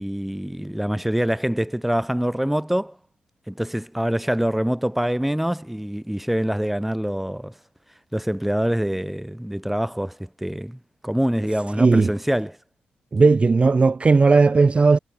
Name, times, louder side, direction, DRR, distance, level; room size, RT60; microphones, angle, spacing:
voice 1, 0.0-3.0 3.5-7.5 8.1-12.6, equal, 5° right, 1.2 m, -25 dB
voice 2, 11.8-12.1 13.1-15.0, right 4 dB, 30° right, 0.5 m, -16 dB
supercardioid pair, 60°, 4 cm